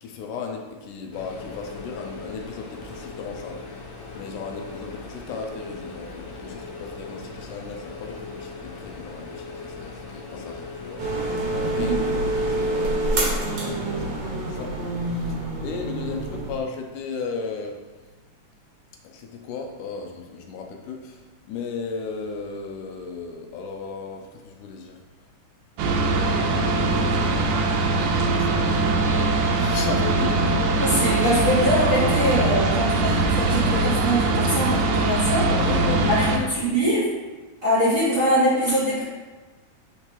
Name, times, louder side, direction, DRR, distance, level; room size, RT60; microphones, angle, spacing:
voice 1, 0.0-3.7 4.1-17.8 19.0-25.0 25.9-27.4 27.9-31.4 35.4-36.8, left 5 dB, 80° left, 3 dB, 2.1 m, -35 dB
sound 1, 1.1-11.5, left 3 dB, 45° left, 2.1 m, -39 dB
sound 2, 11.0-16.6, right 2 dB, 60° right, 1.6 m, -26 dB
sound 3, 25.8-36.4, right 2 dB, 75° right, 1.8 m, -22 dB
voice 2, 30.8-35.5 36.1-37.1 37.6-39.0, equal, 30° right, -10 dB, 1.9 m, -23 dB
8.4 x 4.4 x 3.0 m, 1.3 s
omnidirectional pair, 3.7 m